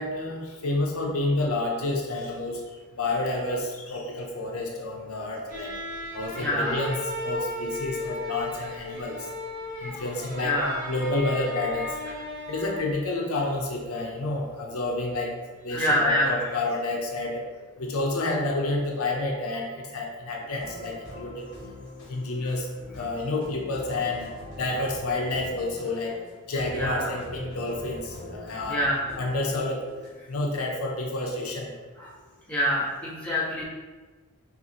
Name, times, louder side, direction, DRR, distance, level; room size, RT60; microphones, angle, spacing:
voice 1, 0.0-2.6 3.0-5.7 6.1-7.0 7.2-9.2 9.8-10.6 10.9-11.9 12.5-15.3 15.6-17.4 17.8-21.4 22.1-22.7 23.0-26.1 26.5-28.8 29.2-29.8 30.3-31.7, left 2 dB, 75° left, 0 dB, 0.6 m, -29 dB
sound 1, 5.5-13.0, left 1 dB, 40° right, 1.0 m, -35 dB
voice 2, 6.3-6.8 10.4-10.7 15.7-16.4 22.4-22.5 26.7-27.1 28.7-29.0 32.0-32.1 32.5-33.6, equal, 5° left, -9 dB, 1.3 m, -26 dB
sound 2, 20.6-30.1, left 1 dB, 55° left, 1.3 m, -43 dB
6.6 x 2.5 x 2.8 m, 1.3 s
head